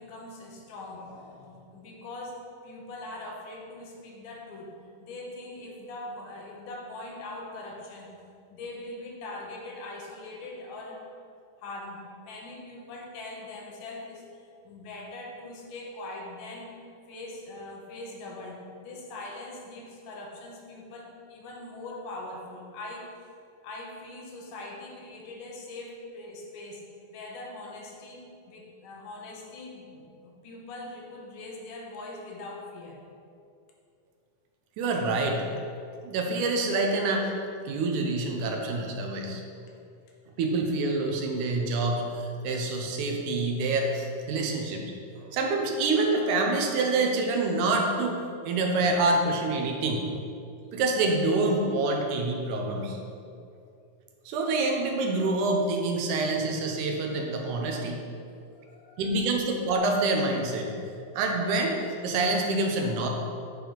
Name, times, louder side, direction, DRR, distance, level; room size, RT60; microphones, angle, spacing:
voice 1, 0.0-8.1 8.5-11.2 11.6-23.1 23.6-33.0 58.5-59.4, left 2 dB, 75° left, -1 dB, 2.7 m, -42 dB
voice 2, 34.8-35.4 36.0-37.3 37.7-39.4 40.4-44.9 45.2-50.1 50.7-53.0 54.3-58.0 59.0-60.7 61.1-63.1, right 2 dB, 80° right, 2 dB, 2.2 m, -26 dB
9.3 x 4.8 x 5.2 m, 2.5 s
omnidirectional pair, 3.7 m